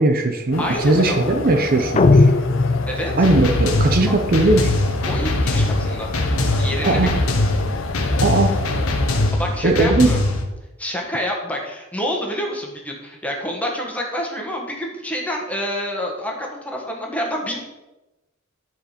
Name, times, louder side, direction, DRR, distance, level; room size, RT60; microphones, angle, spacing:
voice 1, 0.0-2.3 3.2-4.7 6.8-7.1 8.2-8.6 9.6-10.1, right 2 dB, 45° right, 4 dB, 0.7 m, -18 dB
sound 1, 0.5-9.3, left 3 dB, 65° left, 0.8 m, -30 dB
voice 2, 0.6-1.2 2.9-3.1 5.1-6.1 6.6-7.3 9.3-10.2 10.8-17.6, equal, 5° left, 0 dB, 1.7 m, -27 dB
sound 2, 2.0-3.4, left 3 dB, 30° left, 0.4 m, -16 dB
sound 3, 3.2-10.4, left 2 dB, 90° left, 1.4 m, -21 dB
10.5 x 4.9 x 5.1 m, 1.0 s
head